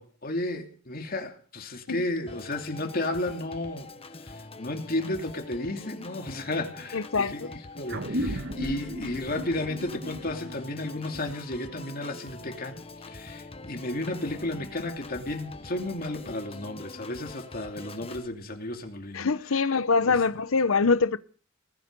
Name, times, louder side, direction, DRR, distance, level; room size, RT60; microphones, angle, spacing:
voice 1, 0.0-3.9 4.2-12.8 13.1-19.3 19.5-20.2, left 1 dB, 45° left, 2.8 m, -33 dB
Organ, 2.3-18.3, left 2 dB, 30° left, 1.1 m, -44 dB
voice 2, 6.9-7.5 19.1-21.2, left 4 dB, 80° left, 0.9 m, -24 dB
sound 1, 7.9-12.8, equal, 55° right, 1.6 m, -36 dB
20.5 x 12.5 x 5.4 m
head